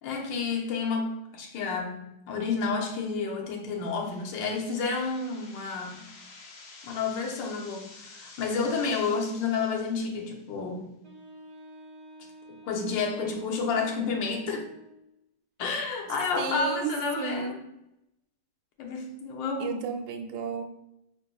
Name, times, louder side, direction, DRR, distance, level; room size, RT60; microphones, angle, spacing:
voice 1, 0.0-6.1 6.8-11.0 12.6-14.7 15.6-17.6 18.8-19.9, left 4 dB, 80° left, 1 dB, 1.5 m, -30 dB
sound 1, 3.6-10.6, left 3 dB, 65° left, 1.0 m, -50 dB
Wind instrument woodwind instrument, 11.0-15.1, right 2 dB, 30° right, 0.6 m, -50 dB
voice 2, 16.4-16.9 17.2-17.6 19.6-20.6, right 6 dB, 85° right, 4 dB, 1.3 m, -32 dB
5.2 x 4.0 x 2.3 m, 0.85 s
omnidirectional pair, 2.0 m